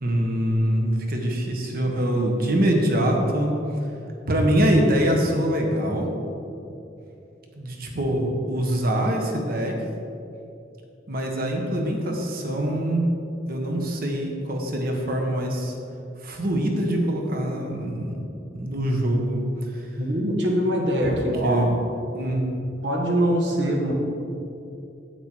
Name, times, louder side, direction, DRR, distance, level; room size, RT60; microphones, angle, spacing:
voice 1, 0.0-3.6 4.3-6.1 7.6-9.8 11.1-13.1 13.5-15.7 16.2-18.2 18.5-19.4 19.7-19.8 21.0-21.2 21.4-21.8 22.1-22.4, right 1 dB, 55° right, 1 dB, 1.4 m, -24 dB
voice 2, 20.0-21.7 22.8-23.9, right 1 dB, 75° right, 0 dB, 1.7 m, -23 dB
9.2 x 8.7 x 4.6 m, 2.7 s
head